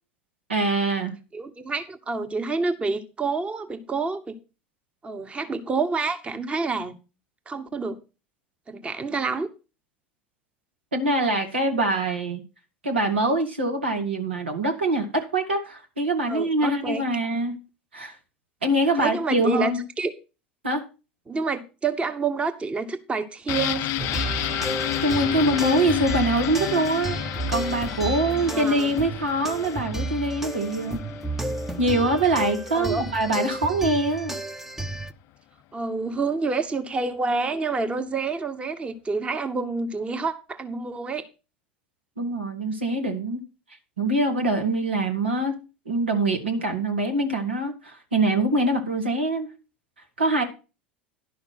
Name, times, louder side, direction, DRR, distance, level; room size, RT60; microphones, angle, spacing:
voice 1, 0.5-1.1 10.9-12.4 12.8-17.6 17.9-18.2 18.6-19.8 20.6-20.8 25.0-27.2 27.5-31.0 31.8-34.4 42.2-43.4 44.0-45.5 45.9-49.5 50.2-50.4, right 1 dB, 85° right, 4 dB, 2.1 m, -24 dB
voice 2, 1.3-4.4 5.0-7.0 7.5-8.0 8.7-9.5 16.3-17.0 19.0-20.1 21.3-23.9 28.3-28.9 32.7-33.0 35.7-41.2, right 4 dB, 20° right, 8 dB, 1.2 m, -28 dB
sound 1, 23.5-33.1 33.4-33.5, left 14 dB, 50° left, 0.5 m, -32 dB
sound 2, 24.0-35.1, right 2 dB, 5° right, 0.7 m, -32 dB
11.5 x 5.9 x 5.9 m, 0.31 s
hypercardioid pair, 85°, 6 cm